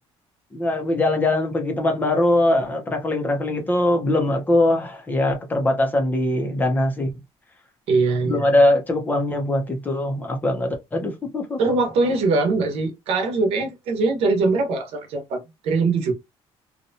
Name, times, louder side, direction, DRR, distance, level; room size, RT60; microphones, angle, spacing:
voice 1, 0.5-7.1 8.2-11.8, left 1 dB, 15° left, 0.6 m, -21 dB
voice 2, 7.9-8.5 11.6-16.1, right 3 dB, 65° right, 0.9 m, -22 dB
2.8 x 2.2 x 2.6 m
cardioid pair, 175°, 11 cm